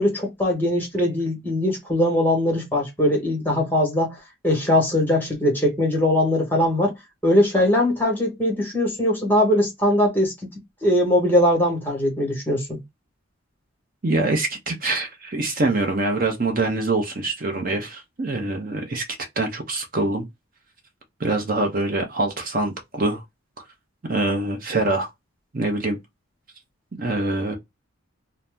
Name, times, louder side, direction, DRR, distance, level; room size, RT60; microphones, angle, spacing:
voice 1, 0.0-4.1 4.4-6.9 7.2-10.3 10.8-12.8, left 1 dB, 10° left, 1.0 m, -21 dB
voice 2, 14.0-19.0 19.4-20.3 21.2-23.2 24.1-25.1 25.5-26.0 27.0-27.6, right 2 dB, 40° right, 0.7 m, -24 dB
2.7 x 2.0 x 3.3 m
head